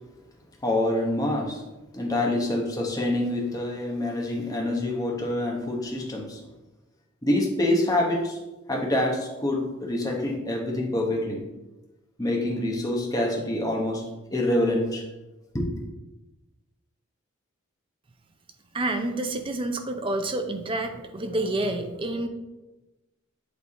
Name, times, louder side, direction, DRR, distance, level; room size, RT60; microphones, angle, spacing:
voice 1, 0.6-1.6 1.9-6.4 7.2-8.4 8.7-11.4 12.2-14.0 14.3-15.0 15.5-15.7, left 1 dB, 15° left, -1 dB, 1.0 m, -26 dB
voice 2, 18.7-22.3, right 2 dB, 25° right, 7 dB, 0.5 m, -28 dB
8.5 x 3.5 x 4.1 m, 1.1 s
head